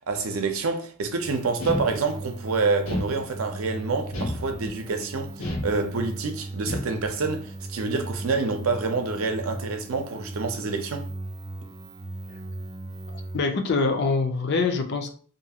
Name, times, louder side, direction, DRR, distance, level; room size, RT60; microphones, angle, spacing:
voice 1, 0.1-11.1, right 4 dB, 80° right, 0.6 m, -27 dB
sound 1, 1.2-13.4, right 2 dB, 20° right, 0.3 m, -38 dB
sound 2, 1.6-2.4 2.8-3.6 4.1-4.9 5.4-6.2 6.7-7.3, left 1 dB, 85° left, 1.0 m, -32 dB
voice 2, 13.3-15.1, left 4 dB, 55° left, 0.5 m, -24 dB
2.6 x 2.3 x 2.8 m
head